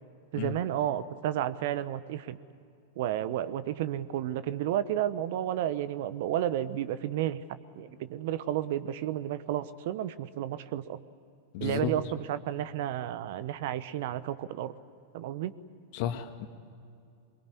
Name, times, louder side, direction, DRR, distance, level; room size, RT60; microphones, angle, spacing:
voice 1, 0.3-2.4 3.0-7.4 7.7-11.0 11.6-14.7 15.1-15.5, right 11 dB, 60° right, 14 dB, 1.0 m, -32 dB
voice 2, 11.5-11.9 15.9-16.5, left 11 dB, 55° left, 7 dB, 2.1 m, -33 dB
24.0 x 22.0 x 9.7 m, 2.5 s
hypercardioid pair, 100°, 0 cm